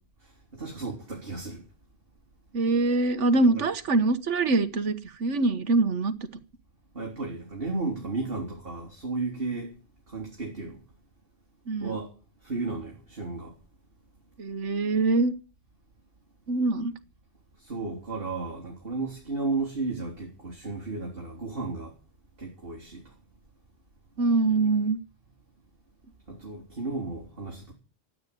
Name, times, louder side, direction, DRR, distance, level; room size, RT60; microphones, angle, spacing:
voice 1, 0.2-1.6 3.5-3.7 6.9-9.7 10.1-10.8 11.8-12.1 12.4-13.5 17.6-21.9 22.4-23.0 26.3-27.7, right 3 dB, 50° right, 3.6 m, -34 dB
voice 2, 2.5-6.1 11.7-12.0 14.4-15.3 16.5-16.9 24.2-25.0, right 3 dB, 70° right, 1.5 m, -24 dB
15.0 x 8.6 x 9.9 m
omnidirectional pair, 1.3 m